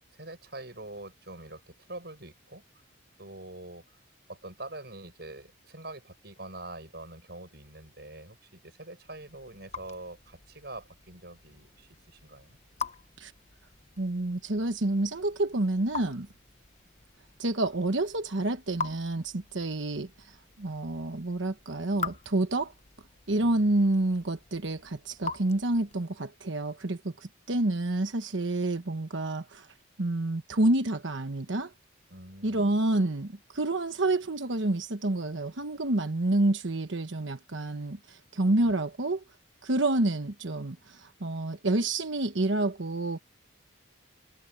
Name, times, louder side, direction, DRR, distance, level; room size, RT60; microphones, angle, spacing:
voice 1, 0.2-2.6 3.2-3.8 4.3-12.6 23.4-23.6 32.1-32.7 38.6-38.7, right 2 dB, 55° right, 7.6 m, -44 dB
Raindrop / Drip, 9.0-26.2, left 4 dB, 35° left, 1.0 m, -44 dB
voice 2, 14.0-16.3 17.4-20.1 20.6-22.7 23.3-29.7 30.0-31.7 32.4-39.2 39.6-43.2, right 2 dB, 70° right, 1.1 m, -28 dB
head